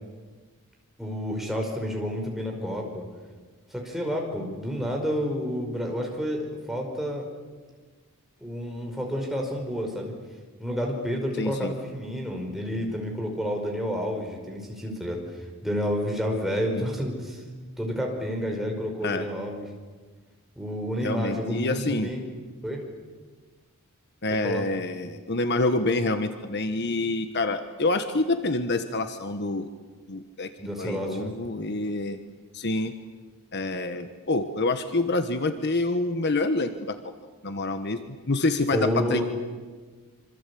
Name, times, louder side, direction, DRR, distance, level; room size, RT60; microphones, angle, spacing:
voice 1, 1.0-3.0 3.7-7.2 8.4-10.1 10.6-15.2 15.6-17.4 17.8-19.7 20.6-22.2 22.6-22.8 24.4-24.6 30.6-31.3 38.7-39.2, equal, ahead, 1 dB, 5.3 m, -30 dB
voice 2, 11.4-11.7 16.7-16.9 19.0-19.3 21.0-22.1 24.2-29.7 30.1-30.5 30.8-32.2 32.5-32.9 33.5-36.9 37.4-39.2, left 2 dB, 50° left, 9 dB, 1.4 m, -27 dB
27.0 x 25.5 x 8.6 m, 1.4 s
head